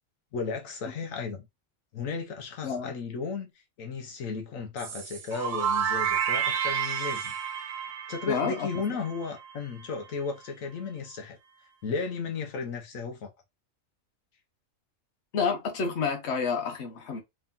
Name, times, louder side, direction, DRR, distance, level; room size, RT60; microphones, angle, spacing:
voice 1, 0.3-1.5 1.9-3.5 3.8-7.3 7.8-11.4 11.8-13.3, left 5 dB, 80° left, 1.2 m, -34 dB
sound 1, 4.8-9.5, right 8 dB, 80° right, 1.4 m, -30 dB
voice 2, 8.3-8.7 15.3-17.2, left 5 dB, 55° left, 1.3 m, -29 dB
3.5 x 2.6 x 3.6 m
omnidirectional pair, 1.4 m